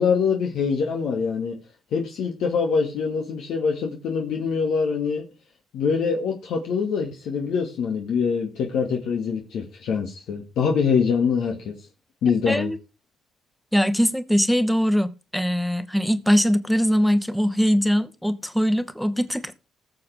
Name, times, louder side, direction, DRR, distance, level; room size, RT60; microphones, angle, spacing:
voice 1, 0.0-1.6 1.9-5.2 5.7-11.7 12.2-12.7, left 6 dB, 75° left, 2.1 m, -24 dB
voice 2, 12.5-12.8 13.7-19.5, equal, ahead, 1.2 m, -21 dB
20.0 x 6.9 x 3.5 m
cardioid pair, 90°, 0 cm